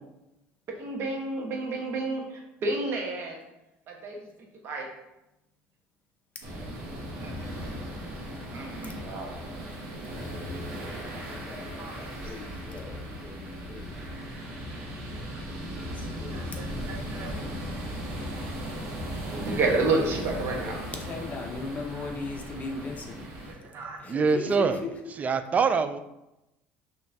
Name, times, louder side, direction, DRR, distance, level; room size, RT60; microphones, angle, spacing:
voice 1, 0.8-3.4 3.9-4.3 4.6-4.9 7.2-7.5 8.5-9.3 11.8-11.9 16.3-17.4 19.4-20.8 23.6-24.0, right 3 dB, 55° right, 1.1 m, -30 dB
sound 1, 6.4-23.5, equal, 80° right, 1.4 m, -37 dB
voice 2, 11.4-14.2 15.4-16.6 20.5-24.9, left 3 dB, 30° left, 0.8 m, -39 dB
voice 3, 19.2-19.7 24.1-24.8 25.2-26.0, right 5 dB, 30° right, 0.3 m, -25 dB
5.5 x 3.0 x 2.7 m
supercardioid pair, 105°, 5 cm